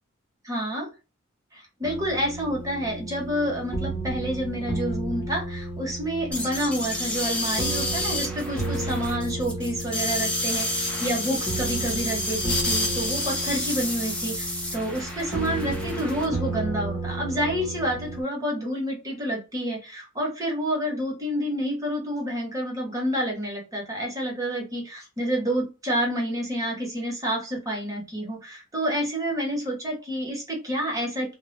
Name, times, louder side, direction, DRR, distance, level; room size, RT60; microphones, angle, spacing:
voice 1, 0.4-0.9 1.5-31.3, equal, 15° right, -2 dB, 0.9 m, -29 dB
sound 1, 1.8-18.2, right 2 dB, 25° left, 0.8 m, -33 dB
sound 2, 6.3-16.2, left 1 dB, 5° left, 0.5 m, -30 dB
2.1 x 2.0 x 3.1 m, 0.30 s
head